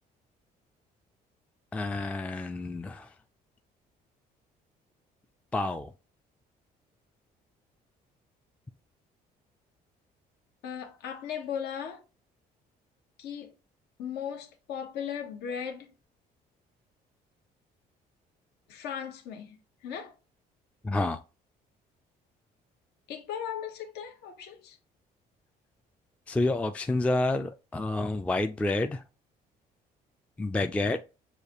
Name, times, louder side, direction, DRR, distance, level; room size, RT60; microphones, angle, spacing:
voice 1, 1.7-3.1 5.5-5.9 20.8-21.2 26.3-29.0 30.4-31.1, left 2 dB, 10° left, 0.3 m, -29 dB
voice 2, 10.6-12.0 13.2-13.5 14.0-15.9 18.7-20.1 23.1-24.8, left 8 dB, 75° left, 1.0 m, -37 dB
6.5 x 2.5 x 2.9 m
cardioid pair, 110°, 17 cm